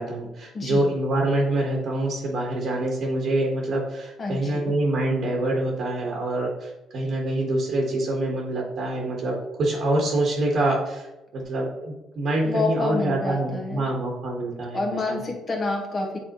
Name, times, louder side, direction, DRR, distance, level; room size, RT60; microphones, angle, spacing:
voice 1, 0.0-15.2, right 1 dB, 50° right, -2 dB, 1.3 m, -26 dB
voice 2, 0.5-0.9 4.2-4.7 12.4-13.9 14.7-16.2, left 3 dB, 35° left, 0 dB, 1.4 m, -28 dB
9.2 x 3.9 x 3.0 m, 0.99 s
cardioid pair, 130°, 0 cm